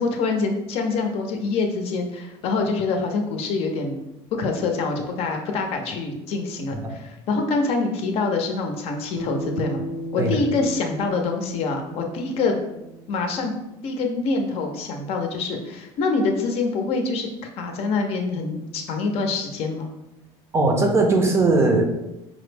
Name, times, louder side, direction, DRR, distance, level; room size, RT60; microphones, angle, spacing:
voice 1, 0.0-4.0 4.3-9.8 10.1-12.6 13.1-13.5 13.8-17.3 17.6-19.9, left 3 dB, 55° left, 3 dB, 0.6 m, -25 dB
Bass guitar, 9.2-13.6, equal, 20° left, 0.7 m, -35 dB
voice 2, 20.5-21.8, right 2 dB, 20° right, 3 dB, 0.5 m, -19 dB
5.0 x 2.0 x 3.2 m, 0.90 s
cardioid pair, 145°, 12 cm